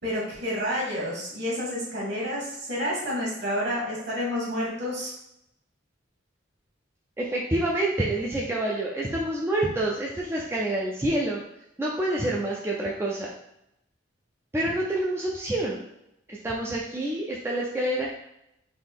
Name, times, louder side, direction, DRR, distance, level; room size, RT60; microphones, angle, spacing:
voice 1, 0.0-5.1, equal, 55° right, -4 dB, 1.5 m, -29 dB
voice 2, 7.2-11.4 11.8-13.3 14.5-15.8 16.3-18.1, right 1 dB, 10° right, -4 dB, 0.3 m, -27 dB
4.0 x 2.7 x 3.5 m, 0.81 s
head